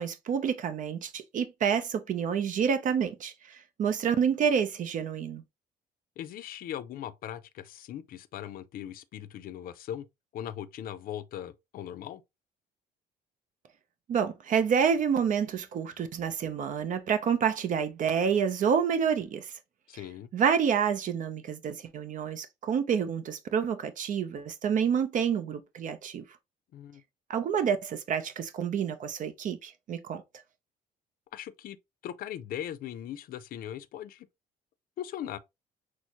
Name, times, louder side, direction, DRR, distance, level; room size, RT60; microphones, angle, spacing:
voice 1, 0.0-5.4 14.1-19.6 20.3-26.2 27.3-30.2, right 7 dB, 50° right, 0.6 m, -28 dB
voice 2, 6.2-10.0 10.3-12.2 19.9-20.3 26.7-27.0 31.3-31.8 32.0-34.3 35.0-35.4, left 11 dB, 60° left, 0.5 m, -39 dB
6.1 x 2.1 x 2.8 m
cardioid pair, 110°, 17 cm